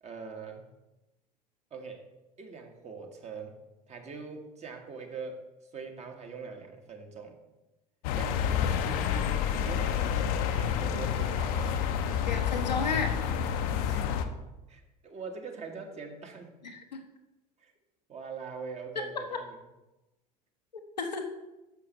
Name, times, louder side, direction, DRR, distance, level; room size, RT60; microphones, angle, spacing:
voice 1, 0.0-0.7 1.7-2.0 2.4-3.6 3.9-5.4 5.7-7.4 8.1-11.8 13.9-14.1 14.7-16.6 17.6-17.7 18.1-19.6, right 5 dB, 30° right, 4 dB, 1.4 m, -43 dB
sound 1, 8.0-14.2, left 8 dB, 60° left, 0.7 m, -29 dB
voice 2, 12.3-13.1 16.7-17.0 19.0-19.4 21.0-21.3, left 4 dB, 85° left, 4 dB, 0.9 m, -33 dB
9.7 x 6.7 x 3.0 m, 1.0 s
figure-of-eight pair, 70°, 21 cm